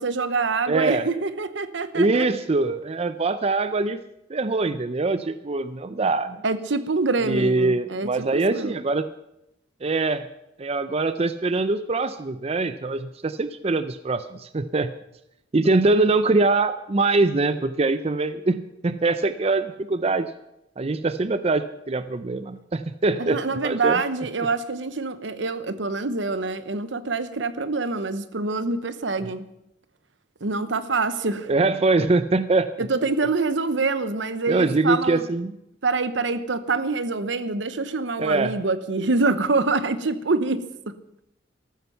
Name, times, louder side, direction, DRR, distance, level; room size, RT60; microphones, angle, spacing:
voice 1, 0.0-2.3 6.4-8.7 23.2-29.5 30.4-31.5 32.8-35.3 35.8-40.6, right 3 dB, 75° right, 13 dB, 0.9 m, -25 dB
voice 2, 0.7-1.1 1.9-4.0 4.3-6.4 7.2-9.1 9.8-10.3 10.6-14.9 15.5-20.3 20.8-24.0 29.2-29.3 31.5-32.7 34.5-35.5 38.2-38.6, right 3 dB, 35° right, 12 dB, 0.5 m, -23 dB
14.0 x 13.5 x 5.7 m, 0.83 s
head